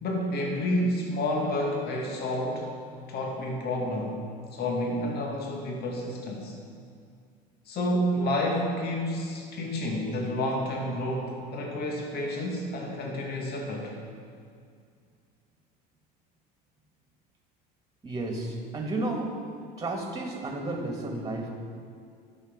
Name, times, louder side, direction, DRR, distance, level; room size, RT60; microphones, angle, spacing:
voice 1, 0.0-2.7 3.1-4.2 4.5-6.5 7.7-13.9, left 1 dB, 50° left, 0 dB, 1.8 m, -29 dB
voice 2, 18.0-19.4 19.8-21.5, right 2 dB, 15° right, 1 dB, 1.9 m, -32 dB
11.5 x 6.8 x 5.2 m, 2.2 s
supercardioid pair, 90°, 21 cm